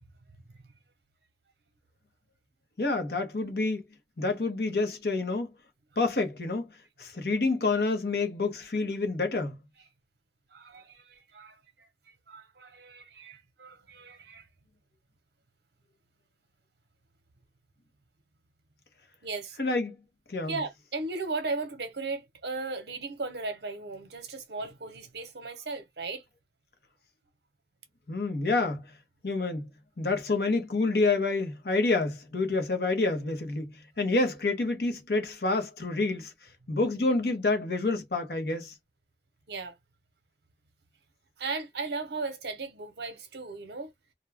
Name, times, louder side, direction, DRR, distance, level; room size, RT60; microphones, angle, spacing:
voice 1, 2.8-3.8 4.2-5.5 6.0-6.7 7.0-9.5 19.6-19.9 20.3-20.5 28.1-28.8 29.2-29.7 30.0-33.7 34.0-36.3 36.7-38.7, left 3 dB, 60° left, 0.8 m, -28 dB
voice 2, 10.5-11.9 12.3-14.5 19.2-19.6 20.5-26.2 39.5-39.7 41.4-43.9, right 3 dB, 70° right, 0.7 m, -36 dB
2.3 x 2.2 x 3.3 m
head